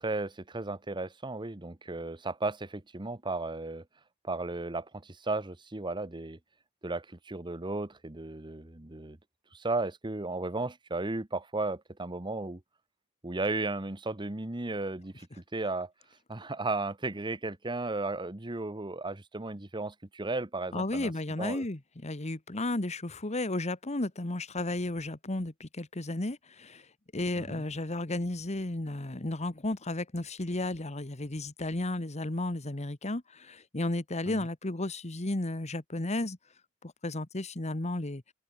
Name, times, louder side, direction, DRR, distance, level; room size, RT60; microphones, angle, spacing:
voice 1, 0.0-3.8 4.2-6.4 6.8-9.2 9.5-12.6 13.2-15.3 15.5-15.9 16.3-21.1 21.4-21.7 27.4-27.6 34.3-34.5, right 2 dB, 20° right, 1.0 m, -35 dB
voice 2, 20.7-26.8 27.1-36.4 36.8-38.2, left 2 dB, 30° left, 1.4 m, -33 dB
open air
head